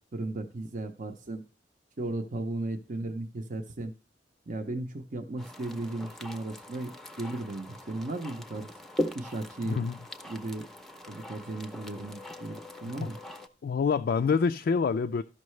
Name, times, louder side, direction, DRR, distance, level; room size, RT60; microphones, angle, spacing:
voice 1, 0.1-1.4 2.0-3.9 4.5-8.7 9.1-9.8 10.2-10.6 11.1-13.2, right 2 dB, 45° right, 0.6 m, -36 dB
sound 1, 5.4-13.5, left 1 dB, ahead, 0.6 m, -40 dB
voice 2, 9.7-10.0 13.0-13.1 13.6-15.2, left 5 dB, 55° left, 0.3 m, -26 dB
13.5 x 5.5 x 3.2 m
head